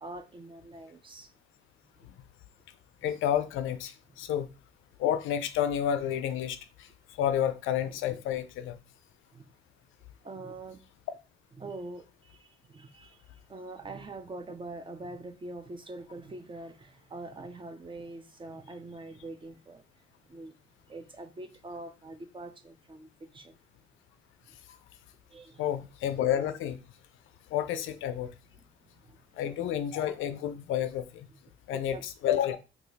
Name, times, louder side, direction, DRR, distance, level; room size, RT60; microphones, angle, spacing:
voice 1, 0.0-1.3 9.3-9.5 10.2-10.8 11.6-20.6 20.9-23.6 24.5-24.6 25.3-25.7 28.5-29.2 31.7-32.0, right 2 dB, 25° right, 0.5 m, -44 dB
voice 2, 3.0-4.5 5.0-6.9 7.2-8.8 25.6-26.8 27.5-28.3 29.4-31.3 31.7-32.0 32.2-32.6, left 10 dB, 85° left, 0.4 m, -30 dB
2.8 x 2.4 x 3.9 m
cardioid pair, 90°, 20 cm